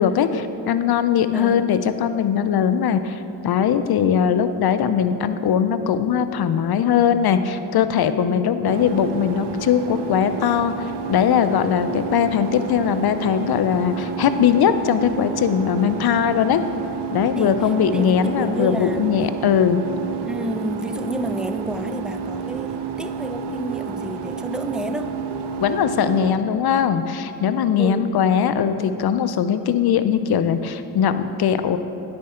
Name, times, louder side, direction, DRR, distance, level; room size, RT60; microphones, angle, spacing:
voice 1, 0.0-16.6 17.1-19.8 25.6-31.8, left 8 dB, 70° left, 10 dB, 0.5 m, -20 dB
voice 2, 1.3-1.8 8.2-8.5 17.4-19.1 20.3-25.2 27.8-28.1, equal, ahead, 8 dB, 0.4 m, -30 dB
sound 1, 8.7-26.4, right 6 dB, 80° right, 0.5 m, -30 dB
9.6 x 4.4 x 4.3 m, 3.0 s
cardioid pair, 45°, 40 cm